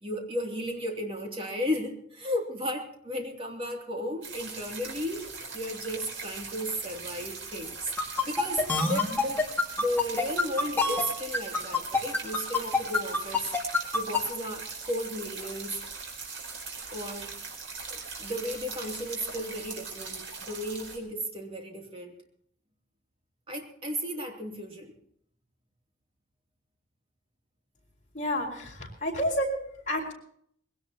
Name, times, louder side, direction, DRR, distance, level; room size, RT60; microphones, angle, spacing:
voice 1, 0.0-5.2 5.5-7.9 8.2-9.4 9.8-13.5 13.9-15.8 16.9-17.3 17.9-22.1 23.5-24.9, equal, 30° right, 1 dB, 2.9 m, -34 dB
sound 1, 4.2-21.0, right 4 dB, 85° right, 4.7 m, -41 dB
sound 2, 8.0-14.2, left 4 dB, 10° left, 2.2 m, -25 dB
voice 2, 28.1-29.5 29.9-30.1, equal, 40° left, -1 dB, 4.4 m, -29 dB
21.0 x 17.5 x 3.0 m, 0.65 s
head